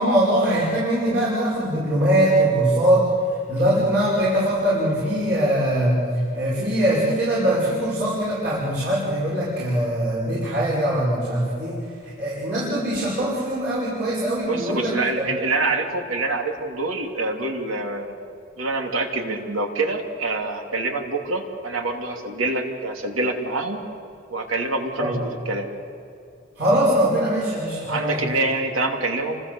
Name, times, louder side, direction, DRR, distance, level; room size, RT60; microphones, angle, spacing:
voice 1, 0.0-3.1 3.5-6.0 6.3-15.3 25.0-25.2 26.6-28.2, right 1 dB, 55° right, -5 dB, 5.8 m, -22 dB
voice 2, 14.5-18.1 18.6-23.8 24.3-25.7 27.9-29.4, right 2 dB, 85° right, 3 dB, 2.9 m, -26 dB
29.5 x 25.5 x 7.1 m, 2.6 s
head